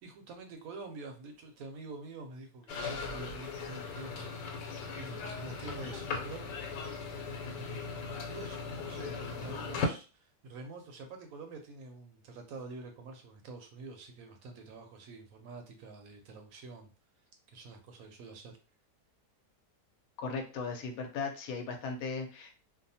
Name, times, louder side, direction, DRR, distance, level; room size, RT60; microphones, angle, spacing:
voice 1, 0.0-6.5 7.5-16.9 17.5-18.5, right 3 dB, 70° right, 5 dB, 0.9 m, -47 dB
sound 1, 2.7-9.9, left 4 dB, 90° left, 1.2 m, -38 dB
voice 2, 20.2-22.5, left 4 dB, 70° left, 4 dB, 1.0 m, -37 dB
2.6 x 2.2 x 2.6 m, 0.34 s
omnidirectional pair, 1.8 m